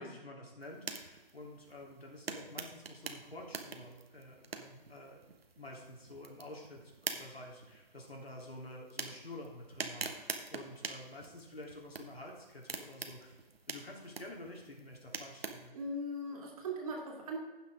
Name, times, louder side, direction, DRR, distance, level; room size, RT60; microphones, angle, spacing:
voice 1, 0.0-5.2 5.6-15.8, left 1 dB, 90° left, -1 dB, 3.2 m, -49 dB
sound 1, 0.6-15.7, right 4 dB, 80° right, 1.3 m, -46 dB
voice 2, 15.7-17.4, right 1 dB, 35° right, 1 dB, 2.2 m, -39 dB
15.5 x 6.0 x 3.6 m, 1.2 s
figure-of-eight pair, 150°, 29 cm